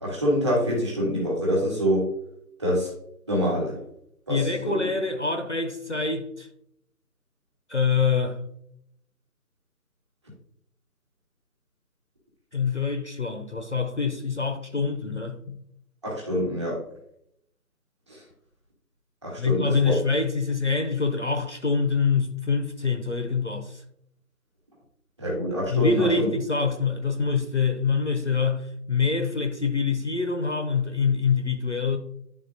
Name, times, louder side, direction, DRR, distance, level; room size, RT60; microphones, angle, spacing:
voice 1, 0.0-2.1 2.6-2.9 3.3-3.8 4.3-4.9 16.0-16.8 19.2-20.0 25.2-26.3, equal, 20° right, 1.3 m, -25 dB
voice 2, 4.3-6.5 7.7-8.4 12.5-15.6 19.4-23.8 25.7-32.0, left 5 dB, 45° left, 0.5 m, -25 dB
10.5 x 3.6 x 2.5 m
figure-of-eight pair, 170°, 47 cm